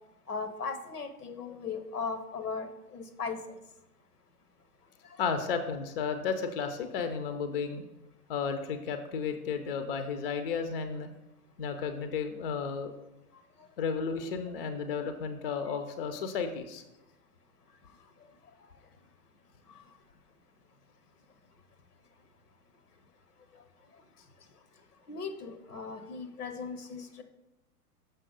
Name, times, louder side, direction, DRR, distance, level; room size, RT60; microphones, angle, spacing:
voice 1, 0.3-3.4 25.1-27.2, left 5 dB, 75° left, 9 dB, 0.9 m, -37 dB
voice 2, 5.2-7.8 8.3-11.1 11.6-12.9 13.8-16.8, left 6 dB, 40° left, 8 dB, 0.6 m, -33 dB
6.6 x 5.6 x 3.8 m, 0.92 s
figure-of-eight pair, 110°, 46 cm